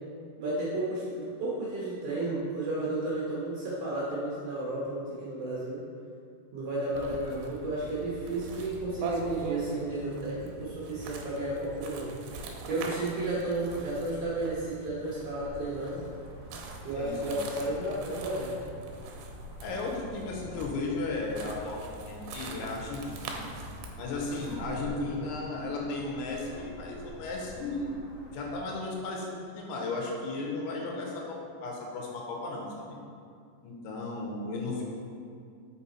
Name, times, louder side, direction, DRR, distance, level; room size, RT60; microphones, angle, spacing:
voice 1, 0.4-5.8 6.5-12.4 12.7-16.0 16.8-18.7 24.9-25.3, right 2 dB, 65° right, -7 dB, 2.0 m, -33 dB
sound 1, 6.9-24.9, right 3 dB, 90° right, 2.7 m, -42 dB
sound 2, 15.4-28.6, equal, 60° left, 1.7 m, -50 dB
voice 2, 17.0-17.4 19.6-21.8 22.1-23.4 24.0-28.0 28.3-33.0 33.6-34.8, left 3 dB, 85° left, -1 dB, 2.9 m, -35 dB
5.9 x 5.4 x 4.3 m, 2.4 s
omnidirectional pair, 4.8 m